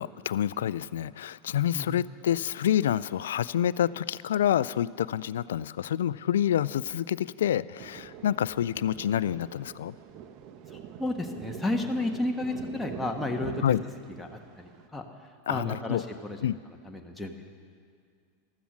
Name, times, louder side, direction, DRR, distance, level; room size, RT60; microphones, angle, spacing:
voice 1, 0.0-9.9 13.6-13.8 15.5-16.0 16.4-16.6, left 10 dB, 75° left, 19 dB, 0.3 m, -28 dB
Thunder, 7.8-14.9, right 8 dB, 50° right, 1.0 m, -44 dB
voice 2, 10.7-13.6 14.2-15.0 15.5-16.4 16.8-17.3, left 2 dB, 5° left, 1 dB, 1.3 m, -32 dB
15.0 x 12.5 x 6.2 m, 2.2 s
hypercardioid pair, 95°, 0 cm